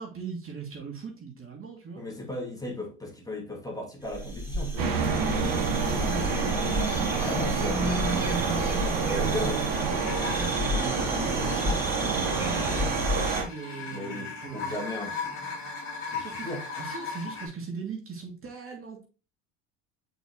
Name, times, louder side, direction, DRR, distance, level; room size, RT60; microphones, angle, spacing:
voice 1, 0.0-2.0 5.2-6.1 10.4-14.8 16.1-19.0, right 5 dB, 35° right, 2.4 m, -40 dB
voice 2, 2.0-4.9 7.2-10.1 11.0-11.2 13.8-15.7 16.1-16.6, left 1 dB, 10° left, 2.5 m, -37 dB
sound 1, 4.0-13.4, equal, 5° right, 3.3 m, -32 dB
sound 2, 4.8-13.4, right 5 dB, 65° right, 1.7 m, -28 dB
sound 3, 5.9-7.5 8.2-17.5, left 5 dB, 85° left, 4.0 m, -39 dB
7.9 x 4.8 x 3.0 m
hypercardioid pair, 75°, 38 cm